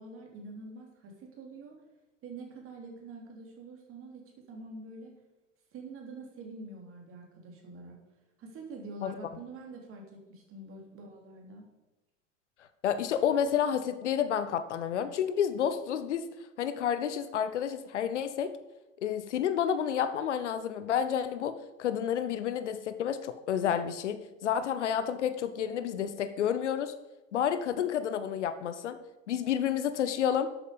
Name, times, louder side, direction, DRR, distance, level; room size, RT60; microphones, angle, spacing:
voice 1, 0.0-1.7 2.2-5.1 5.7-8.0 8.4-11.6, right 2 dB, 35° right, 1 dB, 3.3 m, -46 dB
voice 2, 12.8-16.3 16.6-18.5 19.0-26.9 27.3-29.0 29.3-30.5, left 8 dB, 65° left, 12 dB, 0.9 m, -30 dB
12.0 x 8.5 x 5.2 m, 1.0 s
figure-of-eight pair, 80°, 38 cm